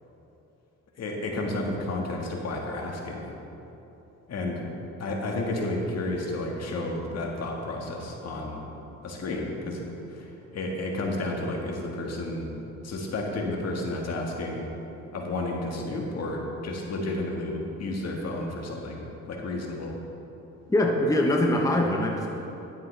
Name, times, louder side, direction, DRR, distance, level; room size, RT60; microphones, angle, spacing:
voice 1, 1.0-3.2 4.3-4.6 5.0-8.6 9.0-12.5 12.8-14.7 15.1-19.9, left 2 dB, 55° left, 0 dB, 1.7 m, -31 dB
voice 2, 20.7-22.3, left 1 dB, 10° left, 0 dB, 1.0 m, -23 dB
11.0 x 9.1 x 3.4 m, 3.0 s
cardioid pair, 90°, 30 cm